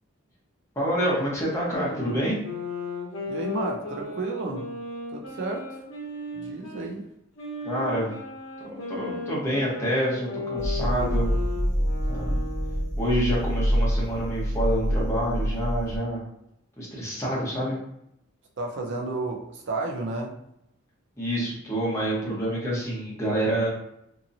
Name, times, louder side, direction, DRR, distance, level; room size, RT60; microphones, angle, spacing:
voice 1, 0.8-2.4 7.6-8.1 8.6-11.3 12.1-12.4 13.0-16.2 16.8-17.8 21.2-23.7, equal, 15° left, -6 dB, 1.0 m, -27 dB
sound 1, 1.6-6.9 7.4-13.0, left 3 dB, 85° left, 0.8 m, -36 dB
voice 2, 3.3-4.7 5.1-5.8 6.3-7.0 18.6-20.4, right 3 dB, 60° right, 1 dB, 0.5 m, -32 dB
sound 2, 10.6-16.0, equal, 5° right, 1.1 m, -26 dB
2.8 x 2.5 x 2.6 m, 0.78 s
head